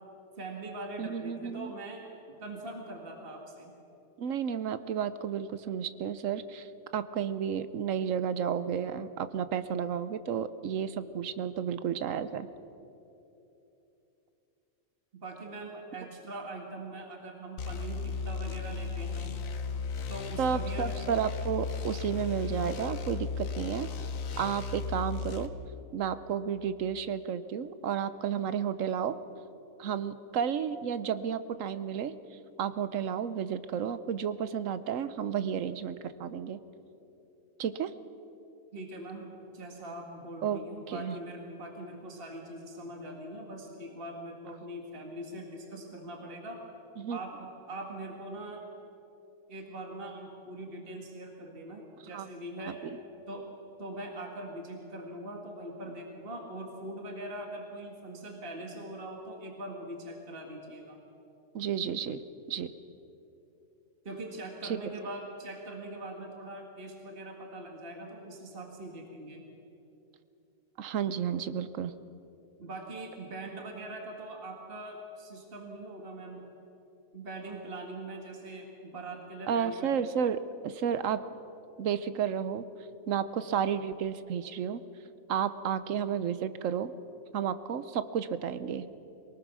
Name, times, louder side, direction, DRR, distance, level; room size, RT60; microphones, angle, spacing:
voice 1, 0.4-2.1 2.4-3.7 15.1-19.4 20.1-21.0 38.7-46.6 47.1-48.6 49.5-52.8 53.3-53.5 53.8-61.0 64.0-69.4 72.6-76.4 77.1-79.9, right 1 dB, 40° right, 1 dB, 2.1 m, -42 dB
voice 2, 1.0-1.7 4.2-12.5 20.4-23.9 24.4-25.5 25.9-29.2 29.8-32.1 32.6-36.6 37.6-37.9 40.4-40.6 40.9-41.2 47.0-47.2 52.1-52.3 52.8-53.0 61.5-62.2 62.5-62.7 64.6-64.8 70.8-71.9 79.5-81.2 81.8-82.6 83.1-84.8 85.3-86.9 87.3-88.8, right 8 dB, 70° right, 13 dB, 1.1 m, -32 dB
sound 1, 17.6-25.5, left 5 dB, 75° left, 1.3 m, -35 dB
23.0 x 19.0 x 6.2 m, 3.0 s
omnidirectional pair, 1.4 m